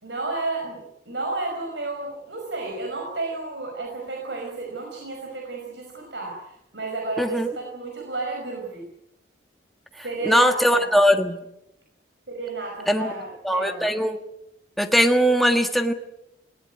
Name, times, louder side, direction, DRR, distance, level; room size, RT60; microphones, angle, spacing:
voice 1, 0.0-8.9 10.0-10.9 12.3-13.9, right 3 dB, 75° right, 1 dB, 5.2 m, -32 dB
voice 2, 10.3-11.4 12.9-13.1 13.4-14.2 14.8-15.9, equal, ahead, 4 dB, 1.6 m, -20 dB
19.5 x 18.0 x 9.2 m, 0.84 s
head